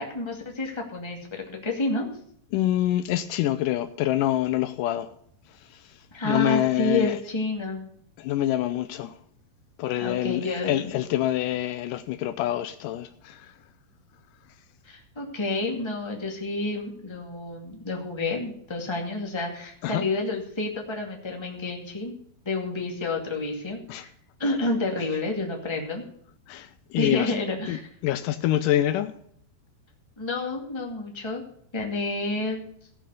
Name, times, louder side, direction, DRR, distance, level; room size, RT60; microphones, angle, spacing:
voice 1, 0.0-2.0 6.1-7.9 10.0-11.0 14.8-22.1 22.4-24.1 24.4-26.0 27.0-27.9 30.2-31.4 31.7-32.6, left 2 dB, 10° left, 1.3 m, -29 dB
voice 2, 2.5-5.1 6.3-7.1 8.2-9.1 9.8-13.4 19.8-20.0 23.9-24.0 26.5-26.7 26.9-27.3 27.7-27.8 28.0-29.1, left 13 dB, 85° left, 1.8 m, -26 dB
16.5 x 5.9 x 6.9 m
omnidirectional pair, 4.5 m